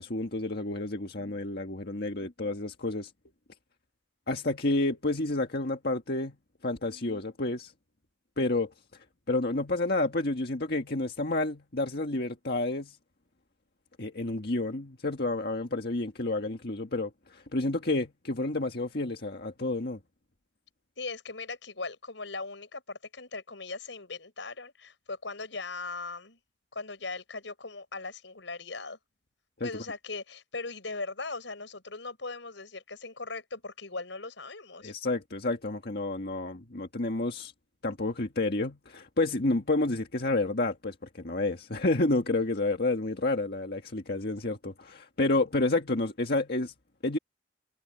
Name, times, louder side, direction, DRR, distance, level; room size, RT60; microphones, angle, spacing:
voice 1, 0.0-3.1 4.3-6.4 6.6-7.7 8.4-8.7 9.3-13.0 14.0-20.0 29.6-29.7 34.8-37.5 37.8-46.7 47.0-47.2, left 2 dB, 60° left, 1.7 m, -30 dB
voice 2, 21.0-26.4 26.7-29.0 29.6-34.9, left 3 dB, 90° left, 5.6 m, -39 dB
head